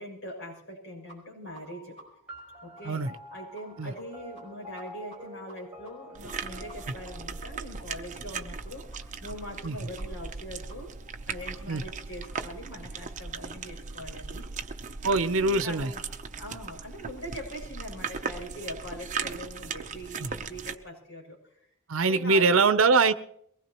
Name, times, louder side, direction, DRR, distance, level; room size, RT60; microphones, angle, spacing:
voice 1, 0.0-2.0 2.6-3.1 3.3-10.9 11.3-14.5 15.0-16.0 16.4-21.4 22.1-22.6, equal, 65° left, 0 dB, 7.1 m, -42 dB
sound 1, 1.1-1.2 1.5-1.6 2.0-2.1 2.4-2.5 2.8-2.9 3.1-3.2 3.5-3.6 3.9-4.0 4.3-4.4 4.7-5.2 5.5-5.6 5.8-5.9 6.3-6.4 6.7-6.8 7.0-7.1 7.4-7.5 7.8-7.9 8.1-8.2 8.5-8.6 8.9-9.0 9.2-9.3 9.6-9.7 10.0-10.1 10.3-10.4 10.7-10.8 11.1-11.2 11.4-11.5 11.8-11.9 12.2-12.3 12.6-12.7, right 1 dB, 30° left, 6.3 m, -51 dB
sound 2, 1.5-10.3, equal, 5° right, 3.8 m, -49 dB
sound 3, 6.1-20.7, right 5 dB, 35° right, 0.8 m, -38 dB
voice 2, 15.0-15.9 20.2-20.3 21.9-23.1, right 4 dB, 70° right, 13 dB, 0.7 m, -23 dB
22.5 x 19.5 x 3.0 m, 0.72 s
head